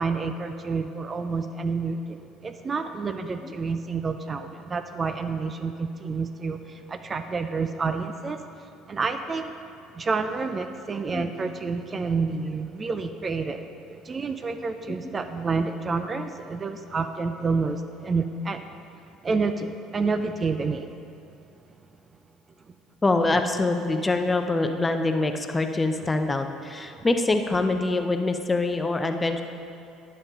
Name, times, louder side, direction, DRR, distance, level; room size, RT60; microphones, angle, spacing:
voice 1, 0.0-9.5 9.9-18.7 19.2-21.0 26.9-27.1, right 4 dB, 30° right, 8 dB, 0.5 m, -29 dB
voice 2, 23.0-29.4, left 2 dB, 20° left, 6 dB, 0.6 m, -24 dB
11.0 x 5.5 x 5.0 m, 2.5 s
figure-of-eight pair, 60°, 0 cm